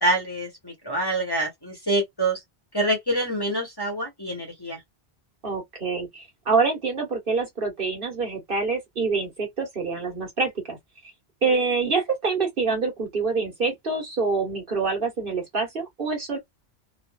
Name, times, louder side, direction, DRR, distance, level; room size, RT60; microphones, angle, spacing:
voice 1, 0.0-2.4 2.7-4.8, right 1 dB, 25° left, 1.2 m, -26 dB
voice 2, 5.4-10.8 11.4-16.4, right 4 dB, 55° right, 1.4 m, -26 dB
3.0 x 2.4 x 2.3 m
omnidirectional pair, 1.1 m